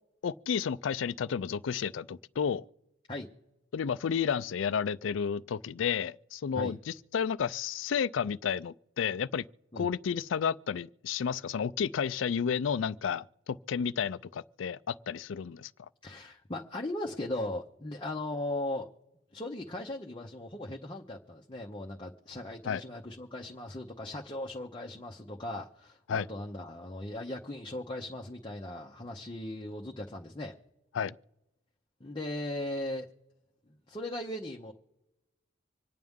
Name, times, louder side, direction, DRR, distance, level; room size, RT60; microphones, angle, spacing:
voice 1, 0.2-2.7 3.7-9.4 9.8-15.7 22.7-22.8 26.1-26.3 30.9-31.1, left 7 dB, 80° left, 0.4 m, -31 dB
voice 2, 16.0-18.9 19.3-30.5 32.0-33.1 33.7-34.7, left 1 dB, 25° left, 0.7 m, -38 dB
26.0 x 9.3 x 3.6 m
head